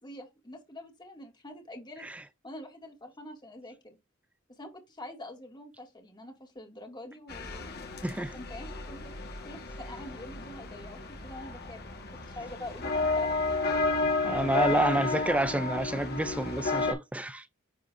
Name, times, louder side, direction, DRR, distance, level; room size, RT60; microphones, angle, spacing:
voice 1, 0.0-2.1 2.4-4.0 4.5-7.8 8.2-13.7 14.7-15.0, left 1 dB, 20° left, 2.1 m, -46 dB
sound 1, 7.3-16.9, left 3 dB, 50° left, 1.4 m, -32 dB
voice 2, 8.0-8.3 14.2-17.5, right 1 dB, 5° right, 0.3 m, -29 dB
10.5 x 3.8 x 2.5 m
head